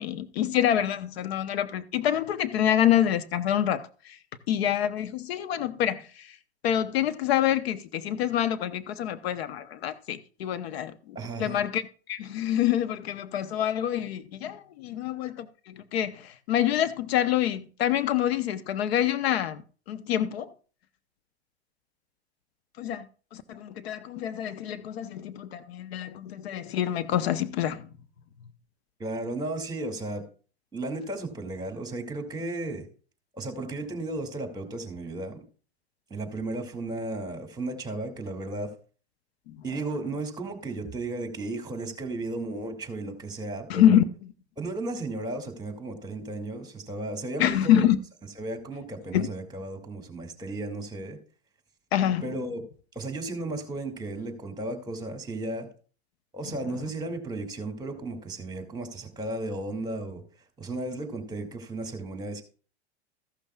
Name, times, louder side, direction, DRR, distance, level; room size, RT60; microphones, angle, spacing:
voice 1, 0.0-4.2 4.5-6.4 6.6-11.8 12.1-19.6 19.9-20.5 22.8-23.1 23.3-27.9 39.5-39.6 43.7-44.0 47.4-48.0 49.1-49.3 51.9-52.2, left 11 dB, 65° left, 0.8 m, -26 dB
voice 2, 11.1-11.6 29.0-30.2 30.7-32.8 33.3-35.4 36.1-38.7 39.6-44.0 44.6-47.8 48.4-51.2 52.2-52.6 52.9-55.7 56.3-60.2 60.6-62.4, right 2 dB, 10° right, 2.3 m, -34 dB
14.5 x 11.5 x 2.3 m
hypercardioid pair, 95°, 33 cm